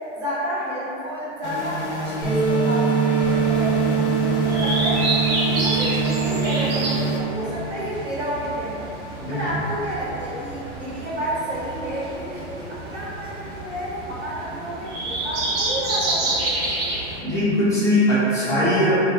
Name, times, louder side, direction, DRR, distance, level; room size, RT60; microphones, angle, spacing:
voice 1, 0.1-5.0 5.3-8.9 9.3-16.9, equal, 85° right, -8 dB, 1.1 m, -30 dB
sound 1, 1.4-7.2, equal, 65° left, 0.5 m, -30 dB
sound 2, 2.2-7.2, right 5 dB, 10° right, 0.7 m, -22 dB
sound 3, 3.2-17.2, right 2 dB, 50° right, 0.8 m, -29 dB
voice 2, 17.2-18.9, left 1 dB, 10° left, -13 dB, 0.4 m, -20 dB
2.4 x 2.2 x 2.7 m, 3.0 s
hypercardioid pair, 110°, 37 cm